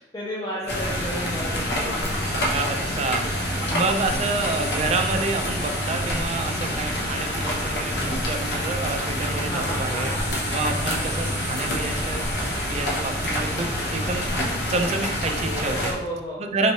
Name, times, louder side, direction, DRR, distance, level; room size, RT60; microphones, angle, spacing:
voice 1, 0.0-2.2 3.5-3.8 9.4-10.3 15.8-16.4, equal, 20° left, -6 dB, 0.5 m, -33 dB
sound 1, 0.7-15.9, equal, 65° left, 0.8 m, -27 dB
sound 2, 2.2-15.1, right 1 dB, 5° right, 1.1 m, -39 dB
voice 2, 2.5-10.1 10.5-12.2 12.7-14.3 14.7-15.9 16.4-16.7, right 3 dB, 35° right, 5 dB, 0.3 m, -28 dB
4.4 x 3.1 x 2.7 m, 0.99 s
head